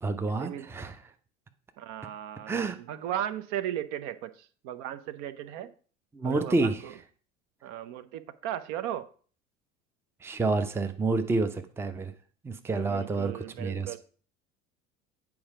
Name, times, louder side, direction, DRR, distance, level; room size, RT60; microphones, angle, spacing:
voice 1, 0.0-1.0 2.5-2.8 6.1-6.8 10.2-12.1 12.4-13.3 13.6-14.0, right 3 dB, 5° right, 0.6 m, -28 dB
voice 2, 1.8-2.6 2.8-5.7 6.2-6.9 7.6-9.1 12.7-14.0, right 11 dB, 50° right, 0.7 m, -36 dB
8.7 x 4.7 x 4.9 m
figure-of-eight pair, 70°, 38 cm